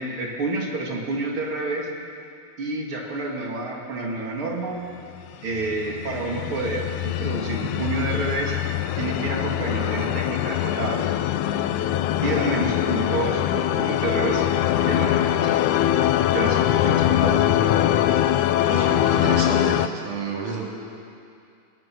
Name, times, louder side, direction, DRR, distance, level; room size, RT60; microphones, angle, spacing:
voice 1, 0.0-1.9 2.6-4.8 5.4-8.5 9.0-11.0 12.2-14.5 14.9-15.6 16.3-17.4, right 2 dB, 45° right, -1 dB, 3.4 m, -29 dB
sound 1, 5.5-19.9, left 12 dB, 85° left, 2.1 m, -22 dB
voice 2, 18.6-20.6, right 4 dB, 80° right, -3 dB, 4.6 m, -30 dB
22.0 x 20.0 x 6.3 m, 2.5 s
omnidirectional pair, 3.4 m